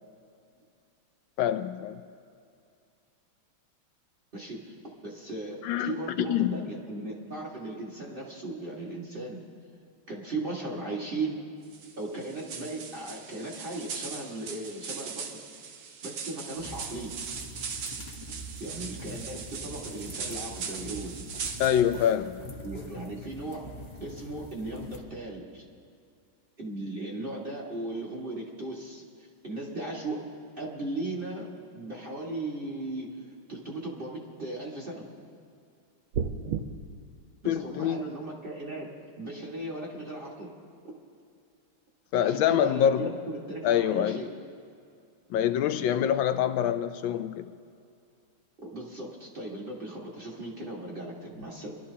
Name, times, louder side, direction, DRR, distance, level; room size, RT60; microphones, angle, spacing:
voice 1, 1.4-2.0 5.6-6.5 21.6-22.3 37.5-38.0 42.1-43.1 43.6-44.2 45.3-47.5, left 10 dB, 75° left, 11 dB, 1.3 m, -25 dB
voice 2, 4.3-4.8 5.0-9.4 10.1-11.4 12.0-15.4 16.0-17.1 18.6-21.1 22.6-23.7 24.0-25.6 26.6-29.0 29.4-30.2 30.6-31.5 31.7-33.1 33.5-35.1 37.4-38.9 39.2-40.5 42.2-44.3 48.7-51.7, right 2 dB, 25° right, -3 dB, 1.8 m, -37 dB
sound 1, 11.7-21.8, right 6 dB, 65° right, 1.5 m, -39 dB
sound 2, 16.6-25.0, equal, 25° left, 0.6 m, -44 dB
sound 3, 36.1-36.6, right 7 dB, 85° right, 1.6 m, -29 dB
26.0 x 12.5 x 2.8 m, 2.4 s
omnidirectional pair, 2.3 m